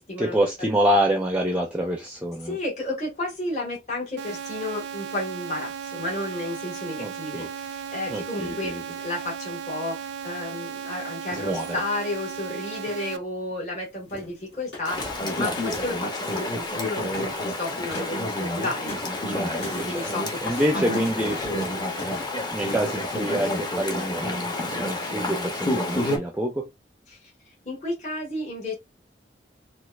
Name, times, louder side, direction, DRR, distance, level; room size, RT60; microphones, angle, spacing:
voice 1, 0.2-2.6 7.0-7.5 8.1-8.8 11.3-11.7 19.3-20.1 20.4-21.4 22.5-26.7, equal, 10° right, 0.5 m, -26 dB
voice 2, 2.4-10.0 10.2-18.9 19.9-21.0 21.3-21.8 27.1-27.2 27.6-28.8, left 2 dB, 45° left, 1.6 m, -32 dB
sound 1, 4.2-13.2, right 7 dB, 85° right, 0.4 m, -36 dB
sound 2, 14.1-15.9 16.2-16.7 17.0-17.3 17.7-18.2 18.6-23.3, left 2 dB, 70° left, 1.5 m, -40 dB
Chatter / Stream, 14.8-26.2, left 1 dB, 25° left, 0.8 m, -29 dB
4.2 x 2.3 x 2.3 m
head